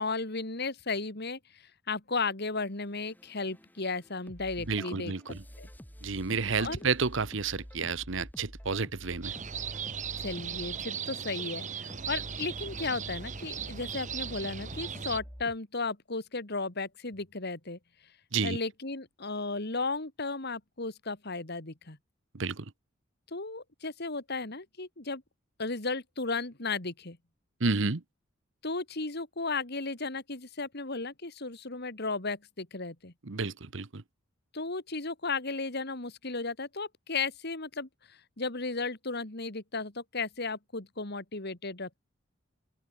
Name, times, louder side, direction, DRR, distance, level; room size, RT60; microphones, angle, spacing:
voice 1, 0.0-5.7 6.6-6.8 10.2-17.8 18.4-22.0 23.3-25.2 25.6-27.2 28.6-33.1 34.5-42.0, left 3 dB, 55° left, 2.6 m, -35 dB
sound 1, 2.8-15.6, equal, 10° left, 4.9 m, -48 dB
voice 2, 4.7-5.4 6.0-9.3 18.3-18.6 22.3-22.6 27.6-28.0 33.3-34.0, right 4 dB, 65° right, 1.1 m, -30 dB
sound 2, 9.2-15.2, right 7 dB, 35° right, 1.1 m, -38 dB
open air
head